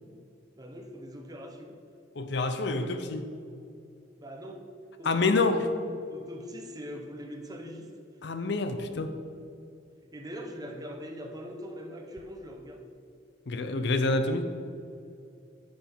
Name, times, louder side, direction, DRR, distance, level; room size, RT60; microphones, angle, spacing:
voice 1, 0.6-1.8 4.2-4.6 5.0-5.7 6.1-7.9 10.1-12.9, equal, 20° right, 3 dB, 0.9 m, -42 dB
voice 2, 2.1-3.3 5.0-5.6 8.2-9.1 13.5-14.5, left 3 dB, 65° left, 9 dB, 0.6 m, -27 dB
10.0 x 7.9 x 3.5 m, 2.6 s
head